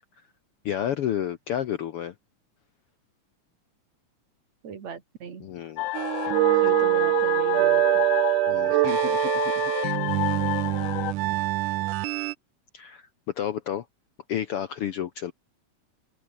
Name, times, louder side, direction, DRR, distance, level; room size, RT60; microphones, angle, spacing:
voice 1, 0.6-2.1 5.4-5.9 8.5-9.3 12.7-13.1 13.3-13.8 14.3-15.3, left 10 dB, 65° left, 1.5 m, -30 dB
voice 2, 4.6-5.5 6.6-8.1, right 6 dB, 60° right, 4.0 m, -39 dB
sound 1, 5.8-11.1, left 20 dB, 85° left, 2.1 m, -30 dB
sound 2, 5.9-12.3, right 19 dB, 85° right, 2.2 m, -24 dB
open air
omnidirectional pair, 3.5 m